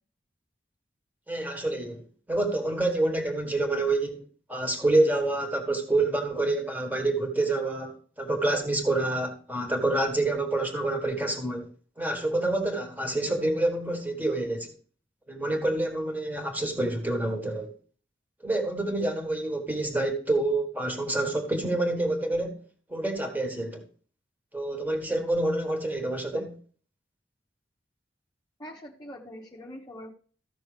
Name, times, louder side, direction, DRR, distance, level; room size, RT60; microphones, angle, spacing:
voice 1, 1.3-4.2 4.5-11.7 12.0-14.7 15.3-17.7 18.4-22.6 22.9-23.8 24.5-26.6, right 2 dB, 10° right, 1.5 m, -27 dB
voice 2, 28.6-30.1, equal, 20° left, 0.9 m, -43 dB
14.5 x 6.2 x 3.3 m
head